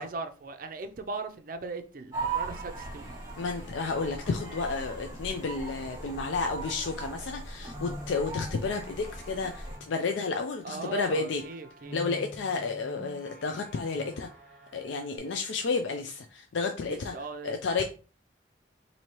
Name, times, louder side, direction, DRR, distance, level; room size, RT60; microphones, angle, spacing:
voice 1, 0.0-3.1 10.6-12.2 16.9-17.5, right 3 dB, 45° right, 0.4 m, -39 dB
sound 1, 2.1-9.8, right 4 dB, 20° right, 1.1 m, -38 dB
voice 2, 3.4-11.4 11.9-14.3 14.7-17.1 17.4-17.8, left 4 dB, 75° left, 0.4 m, -31 dB
sound 2, 7.2-15.2, equal, 15° left, 1.0 m, -47 dB
4.3 x 2.7 x 3.0 m
head